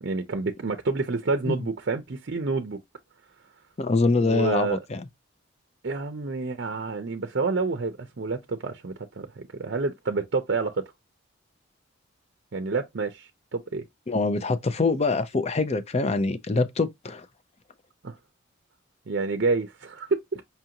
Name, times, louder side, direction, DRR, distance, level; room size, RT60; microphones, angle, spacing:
voice 1, 0.0-2.8 4.2-4.8 5.8-10.9 12.5-13.8 18.0-18.1 19.1-20.4, right 3 dB, 55° right, 0.5 m, -28 dB
voice 2, 3.8-5.0 14.1-17.2, left 3 dB, 30° left, 0.5 m, -24 dB
5.5 x 2.5 x 2.8 m
head